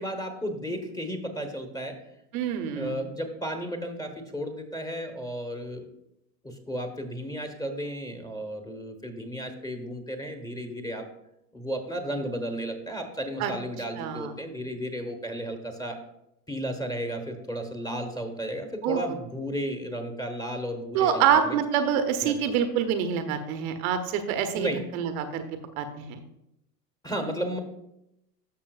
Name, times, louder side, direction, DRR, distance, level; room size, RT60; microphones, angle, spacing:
voice 1, 0.0-2.0 2.7-5.8 6.4-11.0 11.5-16.0 16.5-21.6 22.2-22.3 24.5-24.8 27.0-27.6, equal, 10° left, 5 dB, 1.3 m, -33 dB
voice 2, 2.3-3.0 13.4-13.5 14.0-14.3 18.8-19.0 20.9-25.4 25.8-26.2, right 8 dB, 60° right, 7 dB, 1.0 m, -26 dB
12.5 x 6.1 x 2.4 m, 0.84 s
hypercardioid pair, 90°, 49 cm